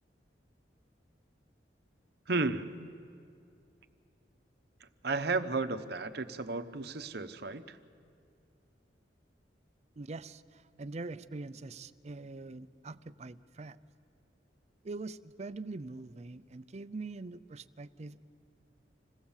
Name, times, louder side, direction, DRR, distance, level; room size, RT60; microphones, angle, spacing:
voice 1, 2.3-2.9 5.0-7.8, right 3 dB, 65° right, 10 dB, 0.9 m, -33 dB
voice 2, 10.0-13.8 14.8-18.4, right 3 dB, 40° right, 14 dB, 0.5 m, -43 dB
26.5 x 17.0 x 7.2 m, 2.4 s
head